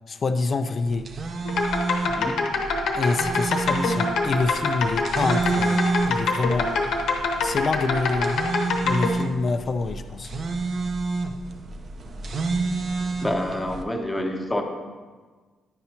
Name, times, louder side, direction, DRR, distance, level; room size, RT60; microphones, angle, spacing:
voice 1, 0.1-1.1 2.9-5.8 6.1-6.8 7.4-8.4 8.8-10.3, left 3 dB, 40° left, 9 dB, 0.3 m, -26 dB
sound 1, 0.9-13.8, right 3 dB, 50° right, 0.6 m, -29 dB
sound 2, 1.4-9.1, left 3 dB, 80° left, 0.9 m, -25 dB
voice 2, 13.2-14.6, left 1 dB, 10° left, 2 dB, 0.9 m, -27 dB
9.5 x 5.6 x 2.9 m, 1.4 s
cardioid pair, 90°, 0 cm